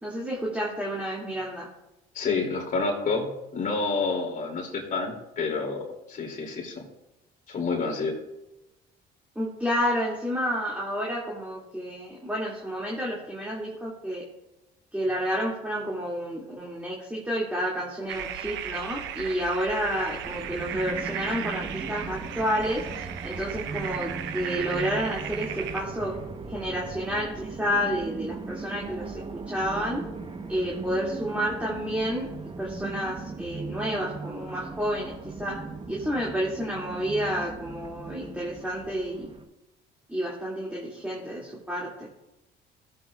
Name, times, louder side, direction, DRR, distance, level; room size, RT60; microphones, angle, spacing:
voice 1, 0.0-1.7 9.4-14.2 14.9-26.1 26.5-30.0 30.5-32.3 32.6-35.1 35.4-35.6 35.9-39.3 40.1-42.1, equal, 5° right, -5 dB, 2.5 m, -30 dB
voice 2, 2.1-6.8 7.5-8.2, left 4 dB, 45° left, 1 dB, 2.8 m, -29 dB
sound 1, 18.1-25.8, right 9 dB, 80° right, 0.8 m, -36 dB
sound 2, 20.2-39.4, right 4 dB, 30° right, 1.1 m, -38 dB
16.0 x 7.9 x 2.4 m, 0.95 s
cardioid pair, 100°, 19 cm